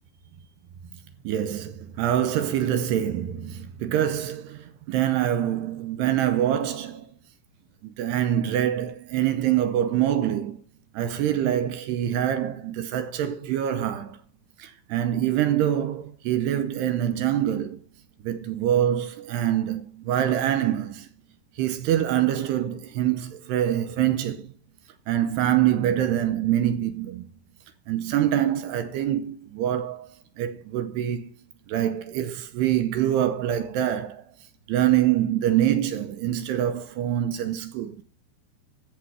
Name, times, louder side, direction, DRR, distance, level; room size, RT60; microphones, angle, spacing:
voice 1, 1.2-7.1 8.0-10.6 11.0-14.2 14.6-17.8 18.2-21.1 21.6-24.4 25.1-27.2 27.9-30.1 30.4-31.3 31.7-34.2 34.7-38.0, right 11 dB, 75° right, 2.7 m, -25 dB
14.0 x 7.4 x 4.7 m
omnidirectional pair, 5.3 m